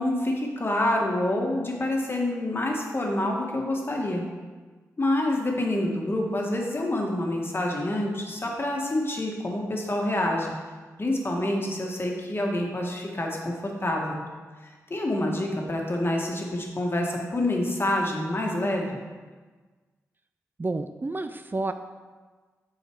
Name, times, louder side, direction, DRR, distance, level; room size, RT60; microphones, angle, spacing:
voice 1, 0.0-4.2 5.0-10.5 11.0-14.2 14.9-19.0, left 1 dB, 40° left, 0 dB, 1.9 m, -27 dB
voice 2, 20.6-21.7, right 2 dB, 30° right, 9 dB, 0.5 m, -30 dB
7.9 x 6.5 x 4.8 m, 1.4 s
cardioid pair, 45°, 6 cm